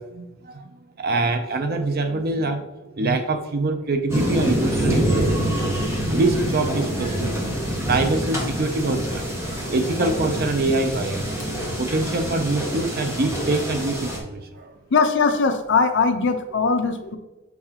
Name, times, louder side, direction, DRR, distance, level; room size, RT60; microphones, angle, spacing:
voice 1, 0.0-2.7 2.9-14.8 16.7-16.8, right 2 dB, 50° right, 7 dB, 0.6 m, -25 dB
sound 1, 4.1-14.2, equal, 15° right, 1.1 m, -26 dB
voice 2, 14.9-17.2, left 4 dB, 60° left, 7 dB, 0.6 m, -20 dB
6.9 x 4.7 x 2.9 m, 1.1 s
head